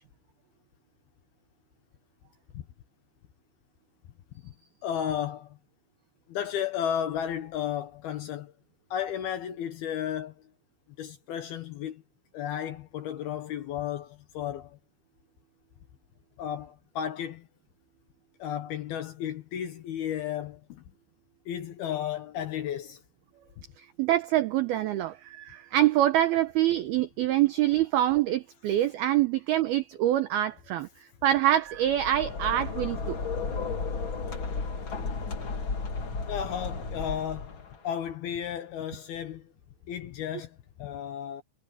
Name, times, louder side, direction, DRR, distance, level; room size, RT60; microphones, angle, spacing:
voice 1, 4.8-5.6 6.3-8.5 8.9-10.3 11.0-12.0 12.3-14.8 16.4-17.5 18.4-20.8 21.5-23.0 36.3-39.5 39.9-41.4, left 9 dB, 70° left, 2.5 m, -33 dB
voice 2, 23.8-30.9 31.2-33.2, right 13 dB, 85° right, 2.2 m, -25 dB
sound 1, 31.7-37.8, left 4 dB, 45° left, 1.6 m, -33 dB
omnidirectional pair, 5.6 m